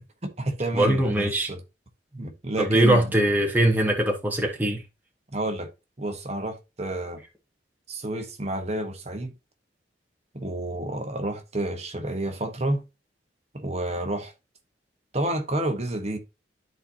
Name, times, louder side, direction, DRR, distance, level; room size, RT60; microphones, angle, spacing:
voice 1, 0.2-1.6 2.1-3.1 5.3-5.7 6.0-7.2 7.9-9.3 10.3-12.8 13.5-14.3 15.1-16.2, right 1 dB, 35° right, 1.2 m, -30 dB
voice 2, 0.7-1.5 2.6-4.8, right 1 dB, 10° right, 1.1 m, -21 dB
12.5 x 4.2 x 2.8 m
head